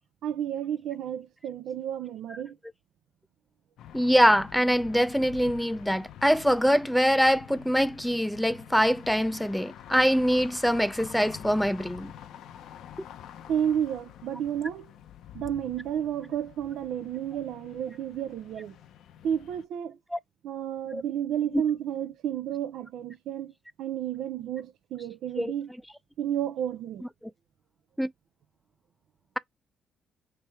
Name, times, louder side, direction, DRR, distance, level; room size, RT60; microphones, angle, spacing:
voice 1, 0.2-2.6 13.5-14.9 15.3-18.7 19.2-20.0 20.4-23.5 23.8-25.7 26.2-27.0, right 9 dB, 80° right, 0.5 m, -31 dB
sound 1, 3.8-19.6, left 10 dB, 75° left, 0.7 m, -47 dB
voice 2, 3.9-12.1 20.1-20.2 20.9-21.0 21.5-21.6 25.4-25.5 28.0-28.1, equal, ahead, 0.5 m, -24 dB
3.4 x 3.3 x 4.4 m
cardioid pair, 90°, 0 cm